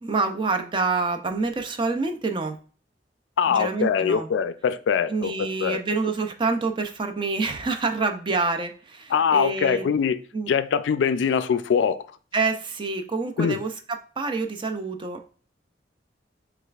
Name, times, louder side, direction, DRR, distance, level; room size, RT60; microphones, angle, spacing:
voice 1, 0.0-2.6 3.5-4.3 5.1-9.9 10.3-10.5 12.3-15.2, right 3 dB, 30° right, 0.4 m, -27 dB
voice 2, 3.4-5.8 9.1-10.2 10.5-12.0 13.4-13.6, left 7 dB, 90° left, 0.3 m, -23 dB
6.3 x 2.4 x 2.3 m
head